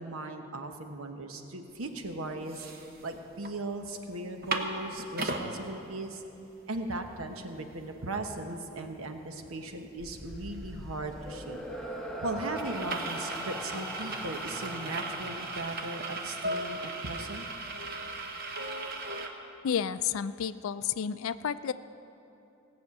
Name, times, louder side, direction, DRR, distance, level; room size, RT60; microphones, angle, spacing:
voice 1, 0.0-2.7 3.0-6.2 6.7-11.6 12.2-17.5, right 2 dB, 80° right, 5 dB, 1.1 m, -38 dB
sound 1, 1.9-2.0 2.3-3.5 3.9-4.0 4.2-5.5 6.1-6.2 6.4-19.3, right 2 dB, 45° right, 0.9 m, -38 dB
sound 2, 10.0-17.4, equal, ahead, 0.9 m, -42 dB
voice 2, 19.6-21.7, left 8 dB, 70° left, 14 dB, 0.4 m, -31 dB
17.5 x 6.4 x 8.4 m, 2.9 s
head